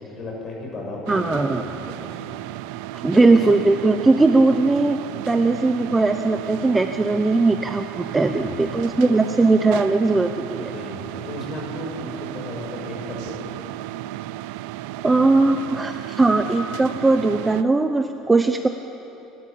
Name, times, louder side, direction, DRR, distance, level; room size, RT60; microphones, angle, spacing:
voice 1, 0.0-2.3 3.1-3.5 8.1-8.6 9.0-9.2 10.6-13.5, left 2 dB, 30° left, -1 dB, 6.9 m, -35 dB
voice 2, 1.1-1.6 3.0-5.0 5.3-10.7 15.0-18.7, right 3 dB, 10° right, 7 dB, 0.7 m, -19 dB
sound 1, 1.1-17.6, right 14 dB, 85° right, 0.5 m, -34 dB
28.5 x 13.5 x 8.5 m, 3.0 s
cardioid pair, 150°, 0 cm